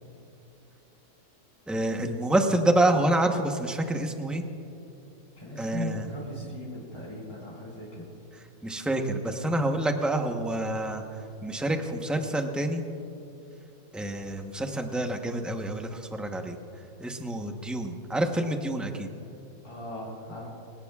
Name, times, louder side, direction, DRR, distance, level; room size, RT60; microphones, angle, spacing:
voice 1, 1.7-4.4 5.6-6.1 8.6-11.0 11.4-12.8 13.9-16.6 17.0-19.1, right 1 dB, ahead, 4 dB, 0.6 m, -27 dB
voice 2, 5.4-8.1 19.6-20.5, left 1 dB, 15° left, -7 dB, 3.9 m, -38 dB
24.5 x 17.5 x 2.4 m, 2.8 s
omnidirectional pair, 1.6 m